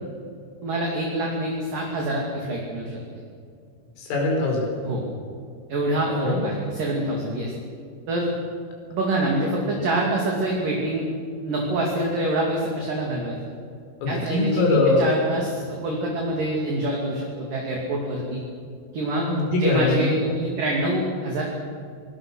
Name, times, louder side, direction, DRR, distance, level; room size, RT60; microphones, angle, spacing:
voice 1, 0.6-3.0 4.8-5.0 5.7-7.5 8.1-8.3 8.9-11.1 11.4-13.4 14.1-18.4 18.9-19.3 19.6-21.4, right 1 dB, 50° right, -2 dB, 3.8 m, -26 dB
voice 2, 4.0-4.7 6.1-6.5 14.0-15.1 19.2-20.1, left 2 dB, 85° left, 0 dB, 7.4 m, -22 dB
23.5 x 20.0 x 6.4 m, 2.3 s
omnidirectional pair, 5.8 m